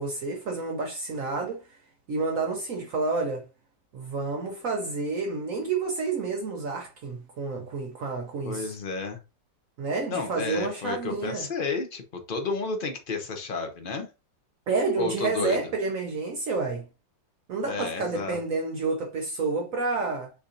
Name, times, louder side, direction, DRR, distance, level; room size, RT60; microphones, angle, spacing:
voice 1, 0.0-1.6 2.1-3.4 3.9-8.7 9.8-11.5 14.7-16.8 17.5-20.3, right 3 dB, 65° right, 0.8 m, -29 dB
voice 2, 8.4-9.2 10.1-14.1 15.0-15.6 17.7-18.4, left 4 dB, 65° left, 0.5 m, -31 dB
6.9 x 2.8 x 2.6 m
omnidirectional pair, 2.0 m